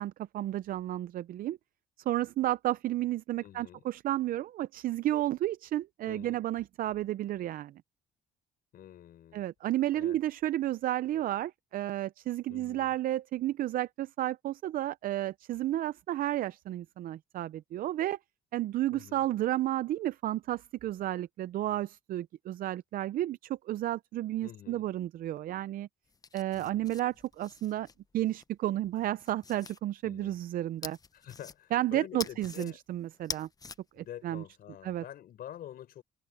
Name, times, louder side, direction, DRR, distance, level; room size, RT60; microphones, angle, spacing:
voice 1, 0.0-1.6 2.1-7.7 9.3-18.2 18.5-25.9 26.3-27.9 28.1-31.0 31.7-33.5 34.0-34.4 34.8-35.0, right 14 dB, 55° right, 0.5 m, -32 dB
voice 2, 3.4-3.8 6.1-6.4 8.7-9.5 9.9-10.2 12.5-12.9 18.9-19.2 24.4-24.9 26.5-26.9 30.0-30.4 31.1-32.8 34.0-36.0, left 11 dB, 60° left, 5.2 m, -47 dB
sound 1, 26.1-28.4 29.0-29.8 30.8-31.8 32.2-32.7 33.1-33.8, left 5 dB, 20° left, 0.8 m, -44 dB
cardioid pair, 110°, 17 cm